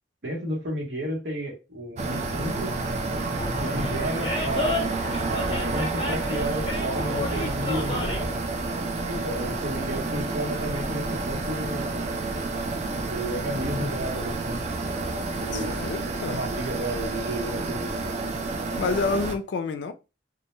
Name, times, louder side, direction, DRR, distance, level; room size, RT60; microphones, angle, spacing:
voice 1, 0.2-2.8 3.6-8.4 9.0-12.0 13.1-14.6 15.4-15.8 16.3-18.0, right 1 dB, 80° right, 0.9 m, -32 dB
sound 1, 2.0-19.4, right 3 dB, 35° right, 0.3 m, -30 dB
Animal, 3.3-8.4, left 2 dB, 30° left, 0.7 m, -31 dB
voice 2, 15.5-16.4 18.8-19.9, left 4 dB, 75° left, 0.3 m, -28 dB
2.1 x 2.1 x 3.0 m
head